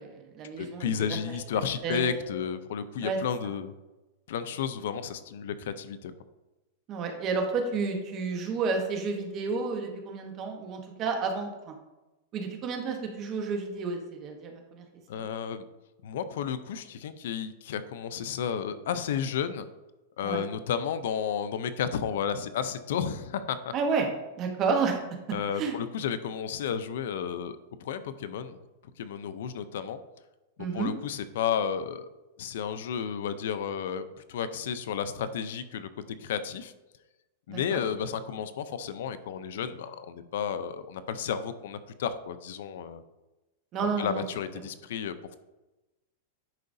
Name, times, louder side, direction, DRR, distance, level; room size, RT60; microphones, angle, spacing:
voice 1, 0.0-1.2 1.8-2.2 3.0-3.2 6.9-11.7 12.3-14.8 15.2-15.3 20.2-20.4 23.7-24.1 24.4-25.0 25.6-25.8 30.6-30.9 37.5-37.8 43.7-44.2, right 4 dB, 30° right, 3 dB, 1.1 m, -31 dB
voice 2, 0.6-3.7 4.3-6.1 15.1-15.6 16.0-19.7 20.2-23.7 25.3-28.6 29.0-30.0 30.6-32.1 32.4-34.0 34.3-35.9 36.2-36.7 37.5-43.0 44.0-45.4, left 8 dB, 70° left, 12 dB, 0.5 m, -32 dB
10.5 x 4.8 x 2.7 m, 1.1 s
supercardioid pair, 160°, 0 cm